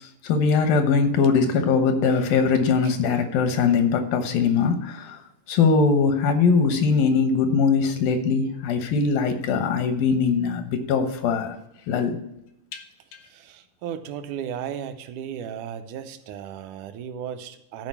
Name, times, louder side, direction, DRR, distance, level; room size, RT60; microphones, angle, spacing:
voice 1, 0.0-5.2 5.5-11.6 11.9-12.2 12.7-12.8, left 5 dB, 85° left, 2.9 m, -21 dB
voice 2, 13.3-17.9, right 9 dB, 75° right, 2.0 m, -35 dB
12.5 x 4.8 x 5.8 m
omnidirectional pair, 4.0 m